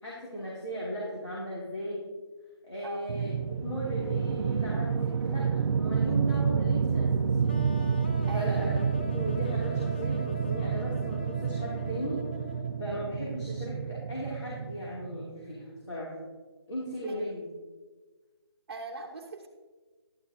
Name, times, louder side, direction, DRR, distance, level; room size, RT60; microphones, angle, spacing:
voice 1, 0.0-2.0 2.6-3.3 3.6-7.5 8.3-8.8 9.1-12.2 12.8-16.1 16.7-17.4, equal, 90° left, -6 dB, 2.9 m, -37 dB
sound 1, 3.1-15.3, right 6 dB, 80° right, 0.4 m, -29 dB
sound 2, 7.5-13.3, equal, 20° left, 0.4 m, -42 dB
voice 2, 8.3-8.7 17.0-17.3 18.7-19.5, right 3 dB, 45° right, 1 dB, 0.8 m, -41 dB
11.5 x 9.9 x 2.8 m, 1.3 s
hypercardioid pair, 165°, 14 cm